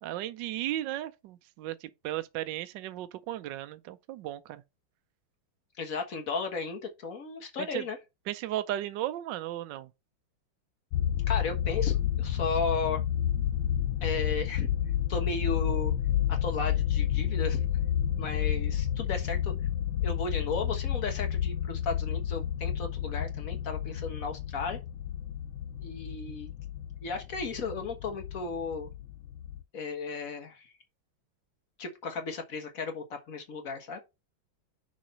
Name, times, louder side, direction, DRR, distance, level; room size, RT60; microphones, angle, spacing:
voice 1, 0.0-4.6 7.6-7.8 8.3-9.9, right 13 dB, 75° right, 1.2 m, -35 dB
voice 2, 5.8-8.0 11.3-13.0 14.0-14.7 15.1-15.9 16.3-17.6 18.2-19.5 20.0-24.8 25.8-26.5 27.0-28.9 29.7-30.7 31.8-34.0, left 4 dB, 45° left, 1.6 m, -35 dB
sound 1, 10.9-29.6, left 10 dB, 90° left, 1.5 m, -30 dB
6.2 x 3.9 x 5.3 m
omnidirectional pair, 2.2 m